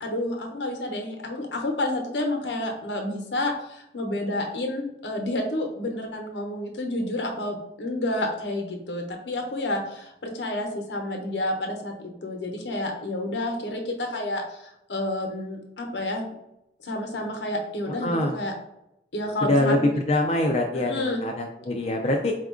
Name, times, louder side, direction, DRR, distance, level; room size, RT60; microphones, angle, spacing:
voice 1, 0.0-16.3 16.8-18.5 19.1-19.9 20.7-21.2, left 1 dB, 85° left, 2 dB, 0.8 m, -30 dB
voice 2, 17.9-18.4 19.4-22.4, left 1 dB, 35° left, 1 dB, 0.4 m, -24 dB
4.4 x 2.4 x 3.7 m, 0.86 s
head